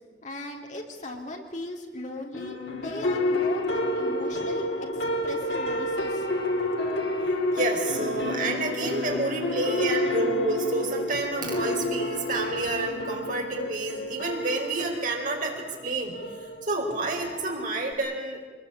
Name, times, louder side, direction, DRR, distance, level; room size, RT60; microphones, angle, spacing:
voice 1, 0.2-4.7 5.2-6.1, left 1 dB, 45° left, 1 dB, 3.4 m, -38 dB
sound 1, 2.3-17.9, left 1 dB, 75° left, 2.8 m, -30 dB
voice 2, 7.5-16.1 16.6-18.4, right 2 dB, 50° right, 1 dB, 4.6 m, -29 dB
23.5 x 20.5 x 8.7 m, 1.4 s
head